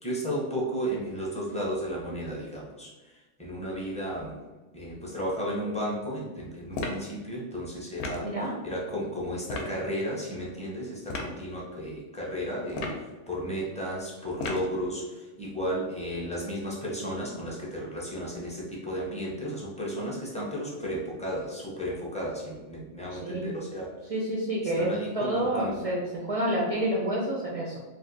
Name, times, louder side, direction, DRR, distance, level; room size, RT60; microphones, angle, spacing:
voice 1, 0.0-4.4 4.7-8.3 8.6-24.0 24.7-25.8, equal, 10° left, -5 dB, 0.4 m, -34 dB
sound 1, 6.7-7.1 8.0-8.3 9.5-9.7 11.1-11.3 12.7-13.1 14.4-14.7, left 3 dB, 65° left, 0.8 m, -33 dB
voice 2, 24.1-24.9 25.1-26.0 26.2-27.8, right 1 dB, 65° right, -4 dB, 0.3 m, -28 dB
2.5 x 2.4 x 3.8 m, 1.2 s
omnidirectional pair, 1.3 m